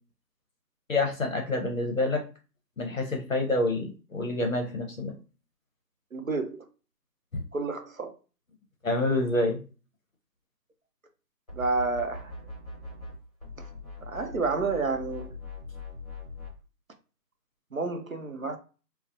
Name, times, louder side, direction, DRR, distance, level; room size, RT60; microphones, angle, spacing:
voice 1, 0.9-2.2 2.8-5.1 7.3-7.4 8.8-9.6, left 2 dB, 50° left, 0.7 m, -27 dB
voice 2, 6.1-6.6 7.5-8.1 11.5-12.3 14.0-15.4 17.7-18.6, right 3 dB, 55° right, 0.6 m, -30 dB
sound 1, 11.5-13.1 13.4-16.5, left 3 dB, 25° left, 0.9 m, -42 dB
2.3 x 2.1 x 2.6 m
figure-of-eight pair, 170°, 50 cm